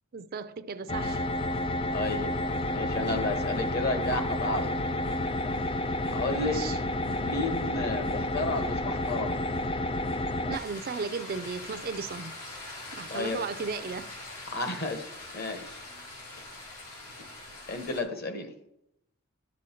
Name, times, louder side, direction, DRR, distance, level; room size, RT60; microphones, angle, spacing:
voice 1, 0.1-1.3 3.1-3.3 6.3-6.8 8.4-8.5 9.2-9.4 10.5-12.3 12.9-14.1, right 5 dB, 45° right, 0.4 m, -36 dB
sound 1, 0.9-10.6, left 1 dB, 25° left, 0.4 m, -30 dB
voice 2, 1.9-2.3 2.7-4.7 6.0-6.6 7.2-9.4 13.1-13.4 14.5-15.1 15.3-15.8 17.7-18.5, left 2 dB, 45° left, 1.1 m, -32 dB
sound 2, 10.5-18.0, left 2 dB, 85° left, 2.7 m, -43 dB
11.0 x 6.3 x 4.5 m
head